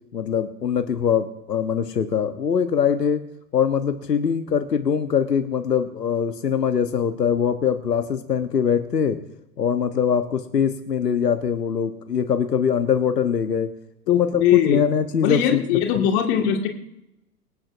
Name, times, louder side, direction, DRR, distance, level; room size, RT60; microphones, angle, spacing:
voice 1, 0.1-3.2 3.5-9.2 9.6-13.7 14.1-15.6 15.9-16.1, left 7 dB, 80° left, 8 dB, 1.1 m, -22 dB
voice 2, 14.1-14.9 15.2-16.7, left 9 dB, 40° left, 3 dB, 2.0 m, -20 dB
25.0 x 8.7 x 2.6 m, 0.86 s
figure-of-eight pair, 105°, 48 cm